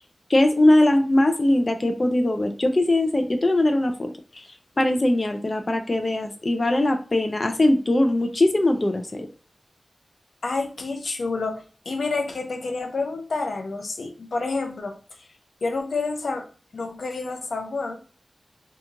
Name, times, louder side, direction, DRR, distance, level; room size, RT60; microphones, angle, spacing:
voice 1, 0.3-4.4 4.8-9.3, left 1 dB, 40° left, 5 dB, 0.5 m, -21 dB
voice 2, 10.4-15.0 15.6-16.5 16.7-18.0, left 3 dB, 85° left, 3 dB, 0.6 m, -29 dB
2.9 x 2.3 x 3.8 m, 0.38 s
wide cardioid pair, 65°, 0 cm